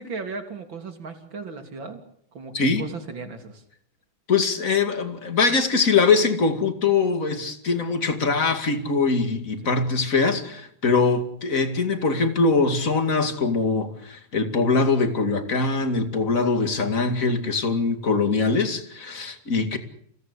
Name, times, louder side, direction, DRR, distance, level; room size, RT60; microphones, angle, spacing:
voice 1, 0.0-2.0 2.3-3.6 9.6-9.7, right 4 dB, 75° right, 5 dB, 3.9 m, -36 dB
voice 2, 4.3-19.8, left 4 dB, 45° left, 7 dB, 2.8 m, -22 dB
29.0 x 17.5 x 8.4 m, 0.69 s
omnidirectional pair, 2.1 m